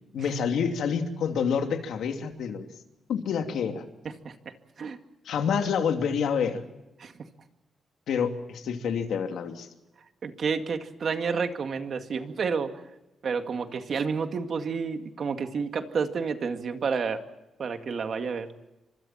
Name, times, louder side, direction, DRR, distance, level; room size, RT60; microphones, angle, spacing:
voice 1, 0.1-2.7 3.1-3.8 5.2-6.6 8.1-9.7, left 6 dB, 85° left, 5 dB, 2.7 m, -28 dB
voice 2, 4.0-5.0 7.0-7.1 10.2-12.7 13.2-17.2 17.6-18.5, right 5 dB, 50° right, 6 dB, 2.2 m, -30 dB
29.5 x 26.0 x 4.4 m, 0.97 s
wide cardioid pair, 140°, 0 cm